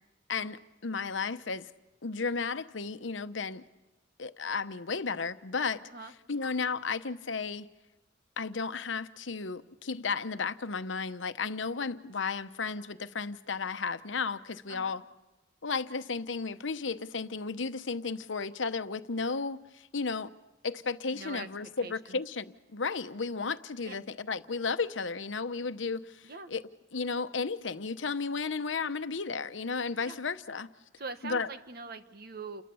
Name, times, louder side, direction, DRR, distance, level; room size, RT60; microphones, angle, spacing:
voice 1, 0.3-1.7 2.0-3.6 4.2-5.8 6.3-7.7 8.4-15.0 15.6-20.3 20.6-26.6 26.9-30.7 31.2-31.5, left 4 dB, 85° left, 0.9 m, -34 dB
voice 2, 21.1-22.2 23.8-24.0 26.2-26.5 30.0-30.2 31.0-32.6, right 3 dB, 55° right, 1.4 m, -43 dB
29.5 x 22.0 x 7.0 m
head